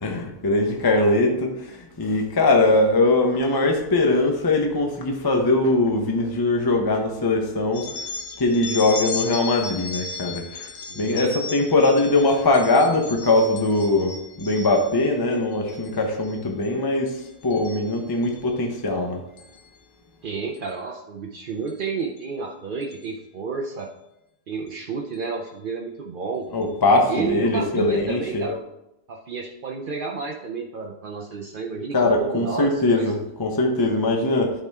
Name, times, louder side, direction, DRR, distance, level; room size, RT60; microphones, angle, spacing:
voice 1, 0.0-7.9 8.4-10.7 11.0-17.2 17.4-19.2 26.5-28.5 31.9-34.5, left 2 dB, 20° left, 2 dB, 0.7 m, -21 dB
sound 1, 7.7-15.0 15.5-15.9 16.2-16.7 17.1-18.4 19.4-19.6 20.5-20.7 21.7-21.8 22.2-22.3 22.8-23.0, left 4 dB, 85° left, 1.5 m, -36 dB
voice 2, 10.9-11.3 20.2-23.9 24.5-26.4 27.1-28.6 29.1-33.1, right 5 dB, 55° right, 1 dB, 0.5 m, -31 dB
11.5 x 4.3 x 3.5 m, 0.88 s
omnidirectional pair, 1.7 m